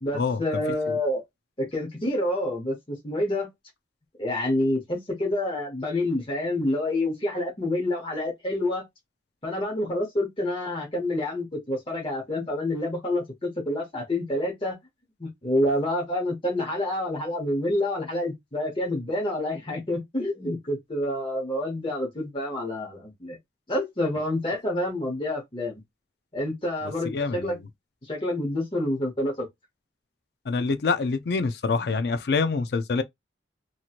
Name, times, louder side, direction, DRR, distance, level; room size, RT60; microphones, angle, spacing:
voice 1, 0.0-1.2 1.6-3.5 4.2-8.8 9.4-14.8 15.2-23.4 23.7-25.8 26.3-27.6 28.0-29.5, left 1 dB, 25° left, 0.9 m, -28 dB
voice 2, 27.0-27.6 30.5-33.0, left 4 dB, 60° left, 0.4 m, -26 dB
2.9 x 2.8 x 2.4 m
head